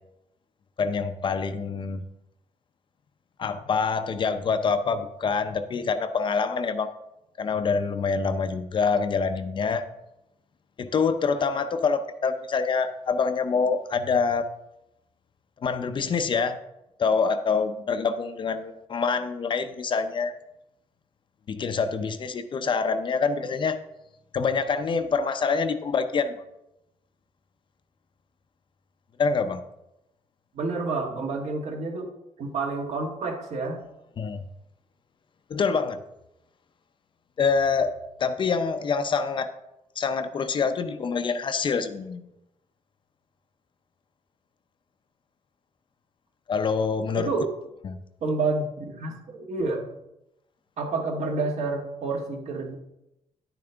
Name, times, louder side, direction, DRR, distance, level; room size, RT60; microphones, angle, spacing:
voice 1, 0.8-2.0 3.4-6.9 7.4-9.8 10.8-14.4 15.6-16.6 17.0-20.3 21.5-23.8 24.3-26.4 29.2-29.6 34.2-34.4 35.5-36.0 37.4-37.9 38.2-39.5 40.0-42.3 46.5-47.3 47.8-48.0, left 5 dB, 40° left, 9 dB, 0.6 m, -26 dB
voice 2, 30.5-32.0 32.4-33.8 47.1-47.5 48.2-49.9 50.8-52.8, right 3 dB, 65° right, 2 dB, 1.6 m, -29 dB
10.5 x 8.8 x 3.4 m, 0.88 s
wide cardioid pair, 170°, 13 cm